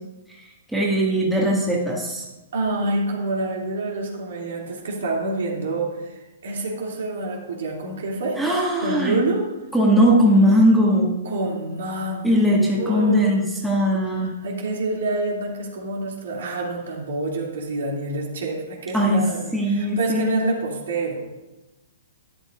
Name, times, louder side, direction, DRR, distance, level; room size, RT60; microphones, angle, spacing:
voice 1, 0.7-2.2 8.4-9.1 9.7-11.1 12.2-14.3 18.9-19.2 19.5-20.3, equal, 5° right, -4 dB, 1.8 m, -19 dB
voice 2, 2.5-8.4 8.8-9.4 11.2-13.4 14.2-21.2, right 2 dB, 60° right, -2 dB, 2.6 m, -27 dB
12.5 x 11.5 x 2.5 m, 1.1 s
figure-of-eight pair, 115°, 0 cm